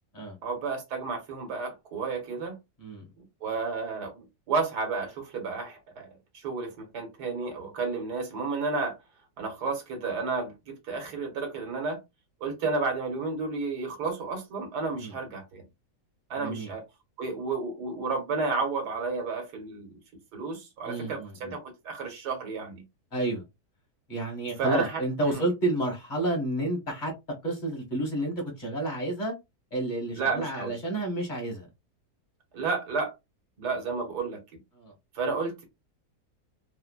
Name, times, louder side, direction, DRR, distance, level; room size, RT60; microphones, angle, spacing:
voice 1, 0.4-2.6 3.4-9.0 9.4-12.0 12.4-15.6 16.3-16.8 17.2-20.0 20.3-22.8 24.6-25.0 25.3-25.4 30.1-30.7 32.5-33.1 33.6-34.4 35.1-35.6, right 4 dB, 75° right, 1.7 m, -31 dB
voice 2, 16.4-16.7 20.8-21.5 23.1-23.4 24.1-27.1 27.4-29.3 29.7-31.7 34.8-34.9, right 2 dB, 30° left, 1.4 m, -30 dB
4.3 x 2.1 x 2.2 m
omnidirectional pair, 1.8 m